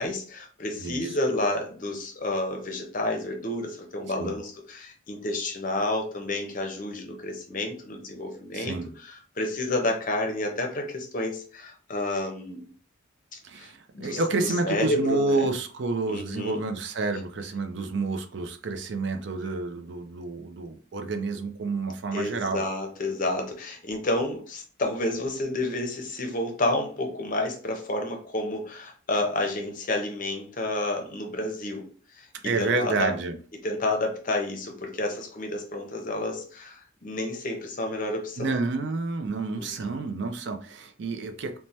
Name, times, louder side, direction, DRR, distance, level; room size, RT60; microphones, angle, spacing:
voice 1, 0.0-12.6 13.6-13.7 13.9-15.5 16.1-16.6 22.1-31.9 32.2-32.3 32.6-33.1 33.6-38.5 39.6-40.0, left 2 dB, 40° left, 3 dB, 0.6 m, -30 dB
voice 2, 0.8-1.1 4.2-4.4 8.5-8.9 13.4-22.6 32.4-33.4 38.4-41.5, right 3 dB, 60° right, 6 dB, 0.4 m, -29 dB
3.2 x 2.1 x 2.7 m, 0.41 s
head